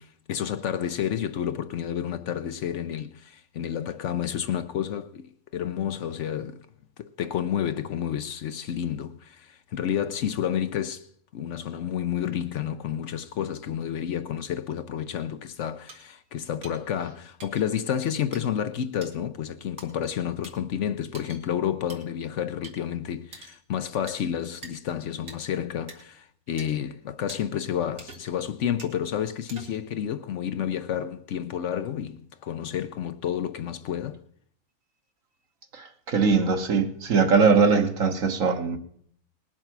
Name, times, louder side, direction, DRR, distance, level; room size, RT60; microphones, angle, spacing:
voice 1, 0.0-6.7 7.0-11.1 11.3-34.2, left 9 dB, 65° left, 0.9 m, -30 dB
Breaking porcelain, 15.9-16.0 16.6-16.7 17.4-17.6 18.3-18.4 19.0-19.1 19.8-19.9 20.4-20.5 21.1-21.4 21.9-22.0 22.6-22.7 23.3-23.6 24.1-24.2 24.6-24.7 25.3-25.4 25.9-26.0 26.6-26.7 27.3-27.4 28.0-28.4 28.8-28.9 29.5-29.9, right 3 dB, 85° right, 2.6 m, -44 dB
voice 2, 35.7-38.8, right 5 dB, 65° right, 1.6 m, -21 dB
20.0 x 7.3 x 5.9 m
omnidirectional pair, 1.5 m